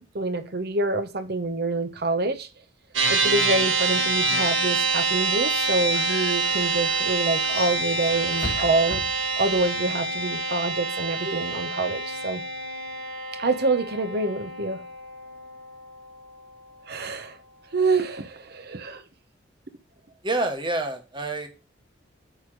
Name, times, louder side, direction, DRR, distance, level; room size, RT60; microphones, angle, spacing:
voice 1, 0.1-2.5 3.1-9.0 9.4-12.4 13.4-14.8 16.9-17.4 17.7-19.0, right 2 dB, 55° right, 0.9 m, -26 dB
sound 1, 2.9-16.5, right 3 dB, 85° right, 1.7 m, -27 dB
sound 2, 4.7-9.7, left 2 dB, 50° left, 1.8 m, -39 dB
voice 2, 20.2-21.5, right 2 dB, 25° right, 1.3 m, -27 dB
9.0 x 3.4 x 6.2 m
head